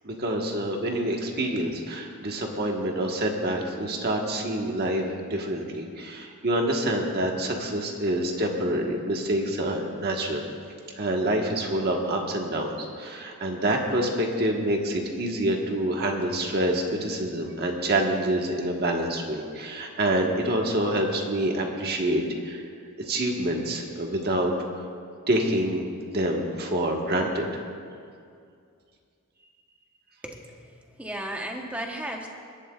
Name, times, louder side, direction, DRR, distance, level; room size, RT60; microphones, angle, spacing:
voice 1, 0.0-5.0 5.3-10.4 11.0-22.6 23.0-24.5 25.3-27.5, right 1 dB, 45° right, 1 dB, 1.4 m, -27 dB
voice 2, 30.2-32.3, right 1 dB, 5° right, 1 dB, 1.0 m, -35 dB
23.5 x 11.5 x 2.4 m, 2.3 s
head